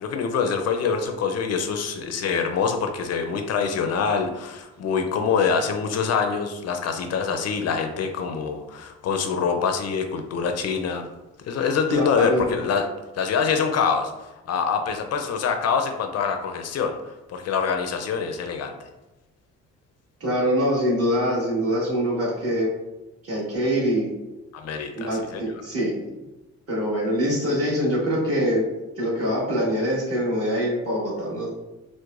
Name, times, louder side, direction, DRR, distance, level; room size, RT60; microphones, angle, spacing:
voice 1, 0.0-11.1 11.5-12.8 13.1-14.1 14.5-17.0 17.3-18.7 24.5-25.4, left 6 dB, 60° left, 6 dB, 0.5 m, -25 dB
voice 2, 11.9-12.5 20.2-22.7 23.2-24.1 25.0-26.3 26.7-28.6 29.0-31.5, equal, 50° right, -5 dB, 1.5 m, -24 dB
4.6 x 2.1 x 2.4 m, 1.0 s
cardioid pair, 90°, 30 cm